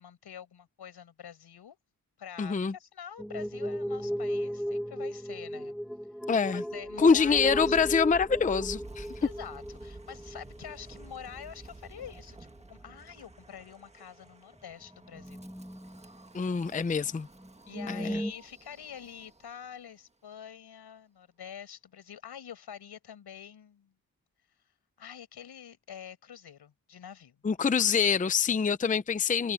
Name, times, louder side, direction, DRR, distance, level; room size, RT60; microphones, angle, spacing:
voice 1, 0.0-1.8 2.2-5.8 6.5-8.0 9.2-15.5 17.7-23.9 25.0-27.4, left 8 dB, 80° left, 6.1 m, -46 dB
voice 2, 2.4-2.7 6.3-6.6 7.0-9.1 16.3-17.3 17.9-18.2 27.4-29.5, left 5 dB, 20° left, 0.6 m, -25 dB
sound 1, 3.2-11.7 12.0-12.6 12.9-13.0 13.5-13.6 14.6-16.7 17.1-17.2 17.4-18.3, equal, ahead, 1.1 m, -36 dB
Wind, 6.7-19.8, right 2 dB, 15° right, 1.4 m, -50 dB
wide cardioid pair, 150°, 39 cm